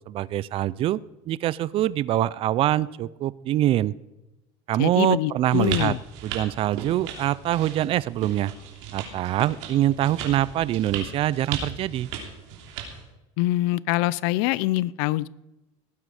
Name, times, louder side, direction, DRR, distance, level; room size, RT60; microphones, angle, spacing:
voice 1, 0.1-1.0 1.3-3.9 4.7-5.9 6.2-8.5 8.9-12.1, right 13 dB, 40° right, 21 dB, 0.4 m, -24 dB
voice 2, 4.8-6.0 13.4-15.3, left 17 dB, 70° left, 21 dB, 0.5 m, -24 dB
sound 1, 5.5-13.0, right 7 dB, 80° right, 3.1 m, -36 dB
18.0 x 9.4 x 4.9 m, 1.0 s
cardioid pair, 135°, 15 cm